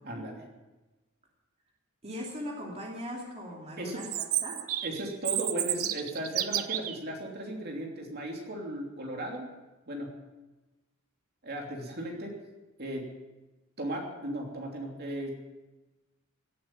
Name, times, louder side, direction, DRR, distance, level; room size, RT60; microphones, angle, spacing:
voice 1, 0.0-0.5 3.8-4.0 4.8-9.5 9.9-10.2 11.4-12.4 12.8-13.1 13.8-15.4, right 1 dB, 50° right, 0 dB, 3.0 m, -36 dB
voice 2, 2.0-4.6, equal, 30° right, -2 dB, 2.7 m, -39 dB
Chirp tweet, 4.0-7.0, right 12 dB, 85° right, 1.0 m, -31 dB
17.5 x 8.8 x 9.1 m, 1.1 s
head